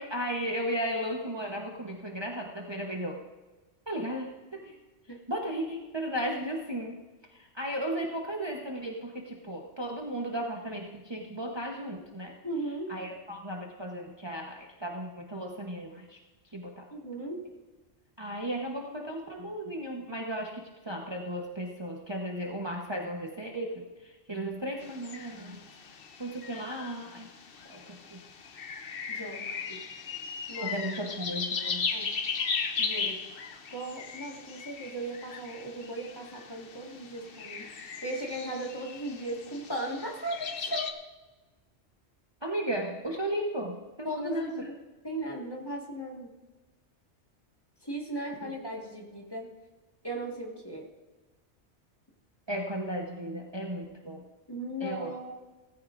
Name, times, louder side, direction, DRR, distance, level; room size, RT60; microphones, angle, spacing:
voice 1, 0.0-3.2 3.9-4.8 5.3-7.0 7.3-12.3 12.9-16.2 16.5-16.9 18.2-23.7 24.0-25.6 26.2-28.2 30.6-31.9 37.3-37.4 42.4-44.7 48.4-48.6 52.5-54.2 54.8-55.1, right 1 dB, 25° right, -1 dB, 1.1 m, -35 dB
voice 2, 12.4-12.9 16.9-17.4 29.1-29.8 30.5-30.7 31.9-32.1 32.8-33.2 33.7-41.0 44.0-44.7 45.0-46.3 47.8-49.5 50.0-50.8 54.5-55.3, right 1 dB, 20° left, -1 dB, 1.9 m, -37 dB
sound 1, 24.8-40.9, left 5 dB, 55° left, 1.0 m, -37 dB
17.5 x 14.5 x 2.6 m, 1.2 s
omnidirectional pair, 1.2 m